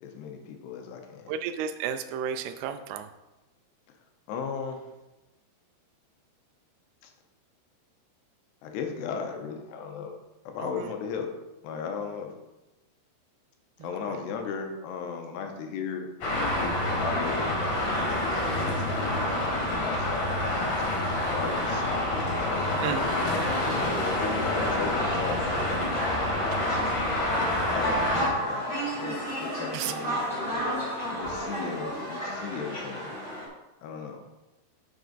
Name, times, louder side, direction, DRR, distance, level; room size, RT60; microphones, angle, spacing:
voice 1, 0.0-1.3 4.3-4.9 7.0-7.1 8.6-10.1 10.5-11.3 11.6-12.3 13.8-19.3 19.8-22.1 22.4-23.2 24.4-25.8 27.7-28.7 29.0-30.3 31.1-33.1 33.8-34.2, left 6 dB, 85° left, 4 dB, 2.8 m, -36 dB
voice 2, 1.3-3.1 10.6-10.9 14.1-14.2 22.8-23.0 29.7-29.9, right 8 dB, 85° right, 8 dB, 2.5 m, -32 dB
Traffic noise roadway noise, 16.2-28.3, left 1 dB, 55° left, 2.8 m, -27 dB
sound 1, 23.6-33.5, equal, 15° left, 2.3 m, -32 dB
7.6 x 6.2 x 3.9 m, 1.0 s
omnidirectional pair, 4.9 m